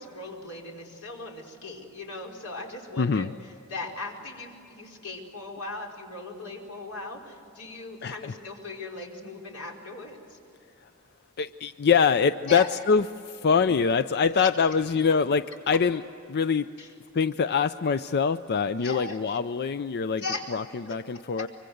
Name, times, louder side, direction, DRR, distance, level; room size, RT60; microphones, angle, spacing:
voice 1, 0.0-3.3 3.7-10.4 12.5-12.7 14.4-14.5 16.8-16.9 18.8-19.2 20.2-20.5 20.9-21.5, left 2 dB, 80° left, 0 dB, 4.8 m, -38 dB
voice 2, 3.0-3.3 8.0-8.2 11.4-16.0 16.3-16.7 17.1-20.2 20.5-21.5, left 5 dB, 50° left, 12 dB, 0.5 m, -24 dB
25.0 x 24.5 x 7.9 m, 2.8 s
head